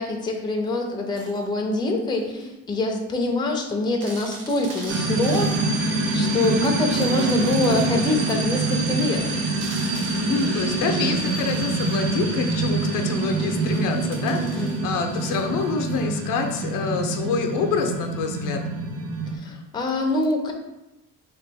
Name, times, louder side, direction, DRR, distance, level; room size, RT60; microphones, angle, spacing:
voice 1, 0.0-9.5 14.4-14.9 19.3-20.5, left 2 dB, 15° left, 1 dB, 0.5 m, -25 dB
sound 1, 1.1-1.5 2.4-2.5 3.0-3.1 3.3-3.4 4.0-5.6 6.1-6.2 6.9-7.9 8.5-8.6 9.6-10.6 11.1-12.0 12.9-16.0 17.8-18.0, right 3 dB, 80° right, 1.0 m, -43 dB
sound 2, 4.9-19.4, right 3 dB, 45° right, 0.6 m, -25 dB
voice 2, 10.2-18.6, left 4 dB, 85° left, 3 dB, 0.7 m, -26 dB
3.9 x 3.0 x 3.4 m, 0.95 s
cardioid pair, 135°, 31 cm